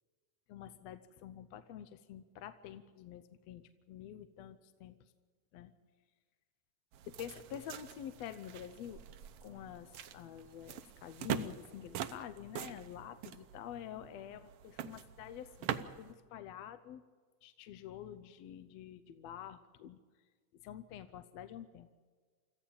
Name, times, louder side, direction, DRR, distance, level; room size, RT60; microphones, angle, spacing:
voice 1, 0.5-5.0 5.5-5.7 7.1-9.0 9.4-15.7 16.0-17.0 17.4-20.0 20.5-21.9, left 10 dB, 75° left, 10 dB, 1.8 m, -48 dB
sound 1, 6.9-16.1, right 9 dB, 70° right, 1.4 m, -44 dB
26.5 x 14.5 x 7.2 m, 1.5 s
omnidirectional pair, 3.3 m